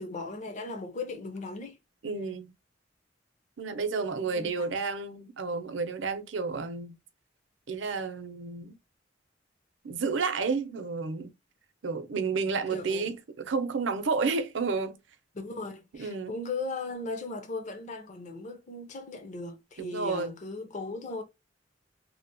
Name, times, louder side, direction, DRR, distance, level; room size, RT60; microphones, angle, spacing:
voice 1, 0.0-1.8 4.2-4.7 12.7-13.2 15.3-21.2, left 3 dB, 40° left, 0.6 m, -37 dB
voice 2, 2.0-2.5 3.6-7.0 7.7-8.7 9.8-11.3 11.8-15.0 16.0-16.3 19.8-20.4, right 4 dB, 75° right, 0.5 m, -31 dB
2.8 x 2.0 x 2.5 m
head